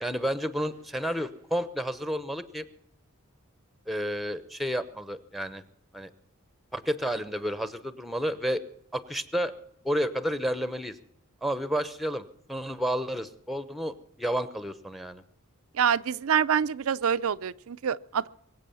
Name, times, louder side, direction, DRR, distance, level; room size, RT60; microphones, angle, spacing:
voice 1, 0.0-2.7 3.9-5.6 5.9-6.1 6.7-8.6 8.9-9.5 9.8-11.0 11.4-15.2, equal, ahead, 13 dB, 0.9 m, -31 dB
voice 2, 15.7-18.3, right 7 dB, 80° right, 12 dB, 0.5 m, -26 dB
23.5 x 8.2 x 7.0 m, 0.73 s
head